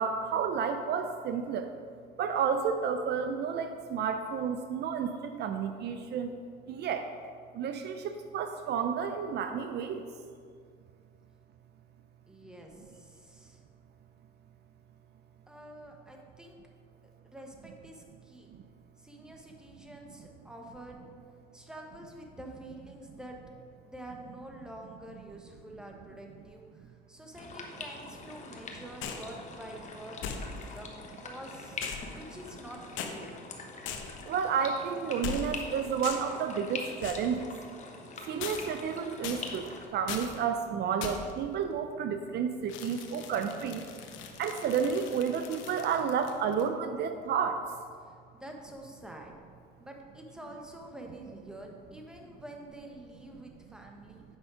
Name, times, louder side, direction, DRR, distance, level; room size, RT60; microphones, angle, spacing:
voice 1, 0.0-1.7 2.2-6.3 6.7-7.1 7.5-10.1 34.3-37.5 38.3-44.0 44.4-47.6, right 6 dB, 55° right, 7 dB, 0.5 m, -31 dB
voice 2, 12.3-13.7 15.5-16.6 17.2-18.5 19.0-21.0 21.5-23.4 23.8-31.8 32.1-33.3 48.1-49.4 49.8-54.2, right 1 dB, 5° right, 1 dB, 1.1 m, -47 dB
sound 1, 27.3-39.9, left 3 dB, 35° left, 1.1 m, -44 dB
sound 2, 29.0-29.3 30.2-30.8 31.8-32.7 33.0-33.1 33.9-34.3 35.2-35.7 36.0-36.4 37.0-37.3 38.4-38.9 39.2-39.7 40.1-40.4 41.0-41.4 42.7-46.7, left 7 dB, 70° left, 0.9 m, -40 dB
8.1 x 5.5 x 4.9 m, 2.1 s
cardioid pair, 105°, 21 cm